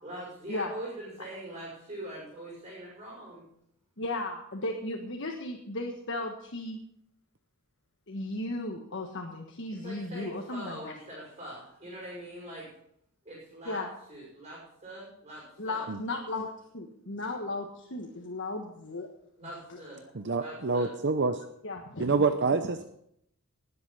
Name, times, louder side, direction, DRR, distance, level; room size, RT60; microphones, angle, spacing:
voice 1, 0.0-3.5 9.7-12.7 13.2-13.8 14.1-15.9 19.4-20.0 20.4-20.9, right 1 dB, 30° right, -4 dB, 5.9 m, -43 dB
voice 2, 4.0-6.8 8.1-10.9 13.6-13.9 15.6-19.1 19.7-19.8 21.6-22.1, left 2 dB, 55° left, 2 dB, 1.4 m, -35 dB
voice 3, 20.1-21.4 22.0-22.8, right 4 dB, 50° right, 8 dB, 0.7 m, -27 dB
19.5 x 8.1 x 5.6 m, 0.72 s
head